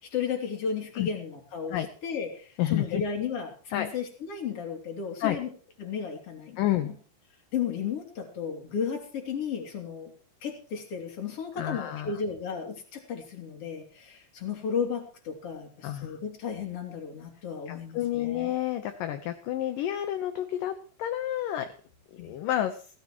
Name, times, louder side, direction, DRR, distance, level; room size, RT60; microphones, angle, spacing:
voice 1, 0.0-1.8 2.0-5.5 5.8-6.9 7.5-10.1 10.4-18.5 22.2-22.3, left 6 dB, 40° left, 2 dB, 3.5 m, -34 dB
voice 2, 2.6-3.0 3.7-3.9 5.2-5.4 6.6-6.9 11.6-12.2 15.8-16.2 17.7-21.7 22.1-22.8, left 12 dB, 70° left, 7 dB, 2.4 m, -30 dB
17.0 x 16.0 x 3.1 m, 0.41 s
omnidirectional pair, 4.6 m